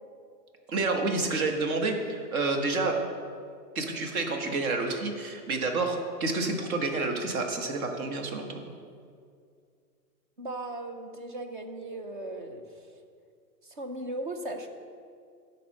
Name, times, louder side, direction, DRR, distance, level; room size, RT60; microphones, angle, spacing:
voice 1, 0.7-3.0 3.7-8.6, right 3 dB, 55° right, 3 dB, 1.4 m, -29 dB
voice 2, 10.4-12.6 13.6-14.7, right 1 dB, 35° right, 6 dB, 0.5 m, -37 dB
10.5 x 4.3 x 6.5 m, 2.2 s
hypercardioid pair, 160°, 50 cm